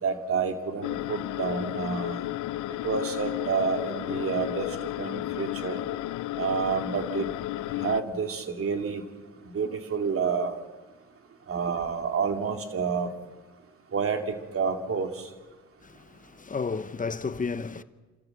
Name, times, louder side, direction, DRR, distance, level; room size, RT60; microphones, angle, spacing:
voice 1, 0.0-2.2 2.7-5.8 6.4-7.3 7.8-9.0 9.5-10.5 11.5-13.1 13.9-15.3, right 5 dB, 45° right, 2.6 m, -29 dB
sound 1, 0.8-8.0, left 16 dB, 80° left, 0.7 m, -33 dB
voice 2, 15.8-17.8, left 4 dB, 25° left, 0.9 m, -32 dB
28.5 x 13.5 x 7.9 m
cardioid pair, 90°, 30 cm